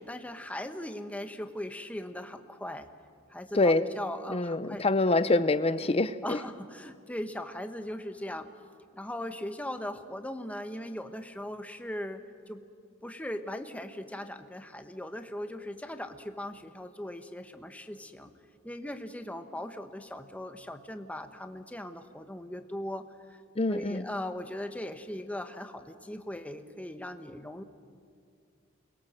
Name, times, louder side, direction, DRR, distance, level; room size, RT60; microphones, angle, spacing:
voice 1, 0.0-2.9 3.3-4.9 6.2-8.5 8.9-12.6 13.0-18.3 18.6-23.4 23.7-27.6, left 1 dB, 5° left, 7 dB, 1.2 m, -39 dB
voice 2, 4.3-6.4 23.6-24.1, left 2 dB, 30° left, 13 dB, 0.7 m, -25 dB
28.5 x 22.0 x 7.6 m, 2.3 s
head